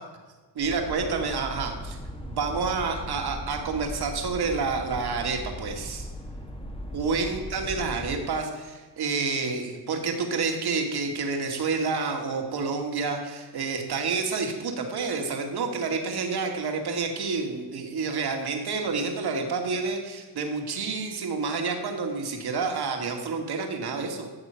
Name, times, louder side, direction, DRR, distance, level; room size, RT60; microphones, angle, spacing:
voice 1, 0.5-6.1 6.9-24.3, right 4 dB, 60° right, 4 dB, 2.3 m, -29 dB
sound 1, 0.6-8.2, equal, 10° left, 1.3 m, -38 dB
13.5 x 7.0 x 5.8 m, 1.4 s
cardioid pair, 105°, 44 cm